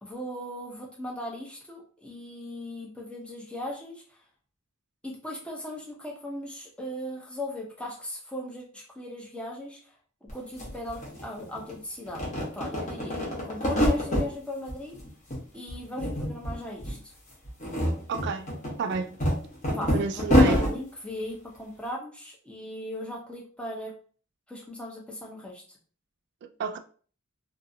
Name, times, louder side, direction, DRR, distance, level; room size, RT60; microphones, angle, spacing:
voice 1, 0.0-4.0 5.0-9.8 10.2-13.2 13.4-15.0 15.5-17.0 19.7-23.9 24.5-25.6, left 1 dB, 5° left, 0.6 m, -38 dB
sound 1, 10.3-10.4 10.6-11.7 12.1-14.3 14.7-15.4 15.7-16.5 16.8-17.0 17.4-20.7, left 1 dB, 35° left, 1.0 m, -26 dB
voice 2, 18.1-18.5 18.8-19.2 19.9-20.6 26.4-26.8, right 5 dB, 55° right, 0.3 m, -30 dB
2.6 x 2.5 x 2.6 m
head